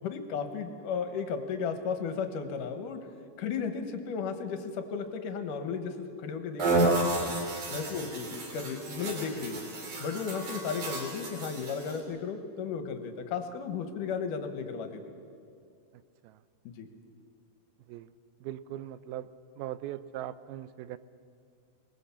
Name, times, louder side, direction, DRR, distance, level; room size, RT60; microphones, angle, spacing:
voice 1, 0.0-3.0 3.4-7.3 7.7-9.6 10.0-15.0 16.6-16.9, left 6 dB, 65° left, 7 dB, 2.8 m, -34 dB
sound 1, 6.6-12.0, right 3 dB, 60° right, 4.3 m, -31 dB
voice 2, 18.4-19.3 19.6-21.0, right 12 dB, 90° right, 15 dB, 2.6 m, -39 dB
24.5 x 20.0 x 7.2 m, 2.3 s
omnidirectional pair, 4.2 m